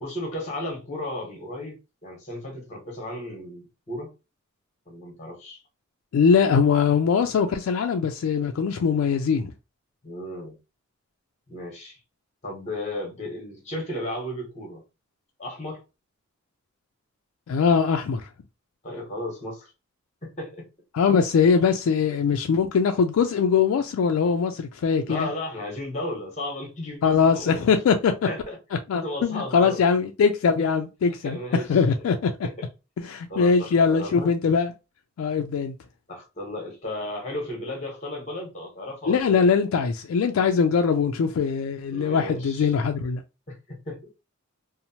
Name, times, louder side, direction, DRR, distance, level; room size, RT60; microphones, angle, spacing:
voice 1, 0.0-4.1 4.9-5.6 10.0-10.5 11.5-12.0 12.4-14.8 15.4-15.8 18.8-19.7 20.2-20.7 25.0-27.6 28.3-28.6 28.9-29.8 31.2-31.7 32.4-32.7 33.3-34.3 36.1-39.4 41.9-42.7 43.5-44.0, left 1 dB, 35° left, 1.0 m, -34 dB
voice 2, 6.1-9.5 17.5-18.3 20.9-25.3 27.0-28.1 28.9-31.4 31.7-32.3 33.0-34.7 35.2-35.7 39.1-43.2, left 6 dB, 80° left, 0.3 m, -22 dB
2.9 x 2.0 x 2.7 m
head